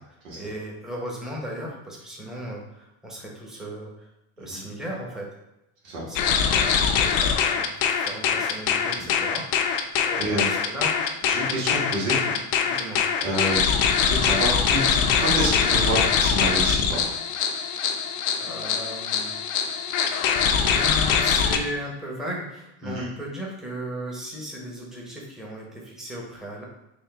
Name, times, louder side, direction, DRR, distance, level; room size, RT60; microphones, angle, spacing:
voice 1, 0.4-4.1 4.4-5.3 6.0-11.0 11.4-11.6 12.3-13.0 18.4-19.3 20.5-26.6, equal, ahead, -3 dB, 0.8 m, -36 dB
sound 1, 6.2-21.6, left 7 dB, 65° left, 0.6 m, -23 dB
voice 2, 10.2-10.5 11.3-12.2 13.2-17.0 22.8-23.1, right 1 dB, 90° right, -4 dB, 1.5 m, -28 dB
3.7 x 2.5 x 3.5 m, 0.89 s
supercardioid pair, 105°, 43 cm